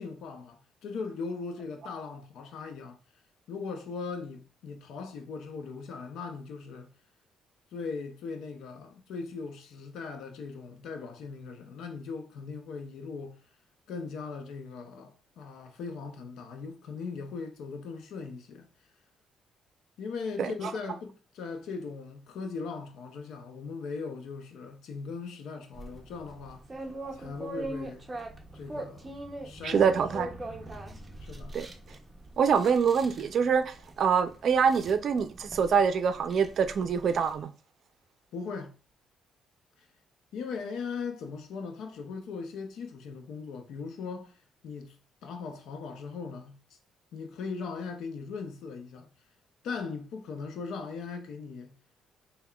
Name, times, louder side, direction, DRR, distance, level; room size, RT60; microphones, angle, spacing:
voice 1, 0.0-3.0 3.5-6.9 7.7-13.4 13.9-18.7 20.0-26.6 27.1-28.0 28.5-29.1 29.4-29.8 31.2-31.6 38.3-38.7 40.3-44.3 44.6-46.6 47.1-49.1 49.6-51.7, left 4 dB, 75° left, 0.6 m, -39 dB
sound 1, 25.7-37.4, right 1 dB, 20° right, 0.7 m, -42 dB
voice 2, 29.6-30.3 31.5-31.7 32.4-37.5, right 6 dB, 55° right, 0.5 m, -25 dB
5.5 x 2.2 x 2.3 m
cardioid pair, 100°, 0 cm